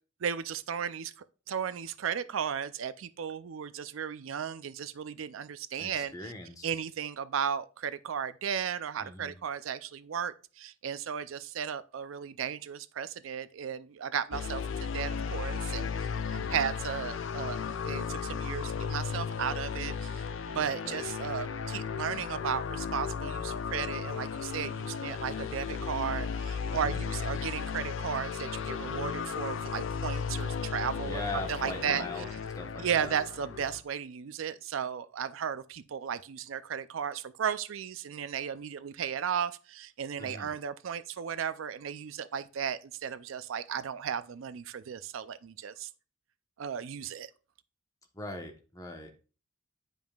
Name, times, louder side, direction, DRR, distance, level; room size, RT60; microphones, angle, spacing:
voice 1, 0.2-1.1 1.5-6.1 6.6-15.9 16.3-20.1 20.5-31.2 31.5-32.0 32.8-45.9 46.6-47.3, right 8 dB, 75° right, 0.4 m, -35 dB
voice 2, 5.8-6.7 9.0-9.4 16.3-16.6 20.8-21.1 26.7-27.1 31.0-32.3 32.5-33.2 40.2-40.5 48.1-49.1, left 2 dB, 15° left, 1.0 m, -40 dB
sound 1, 14.3-33.8, left 6 dB, 70° left, 0.5 m, -35 dB
9.2 x 5.2 x 2.3 m
head